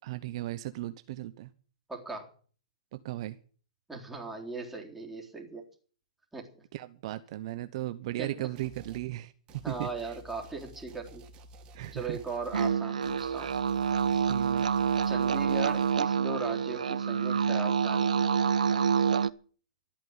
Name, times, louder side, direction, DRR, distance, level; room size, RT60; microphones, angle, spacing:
voice 1, 0.0-1.5 2.9-3.4 6.7-9.3 9.7-9.9 11.7-12.2 14.2-14.7, right 15 dB, 50° right, 12 dB, 0.9 m, -36 dB
voice 2, 1.9-2.3 3.9-5.6 6.3-6.5 8.2-8.4 9.6-11.2 11.9-13.5 15.0-18.2, right 3 dB, 5° right, -1 dB, 3.8 m, -38 dB
sound 1, 8.6-9.1 9.5-15.9, right 1 dB, 25° right, 2.9 m, -51 dB
sound 2, 12.5-19.3, right 6 dB, 85° right, 0.8 m, -27 dB
13.0 x 9.0 x 9.6 m, 0.42 s
hypercardioid pair, 135°, 4 cm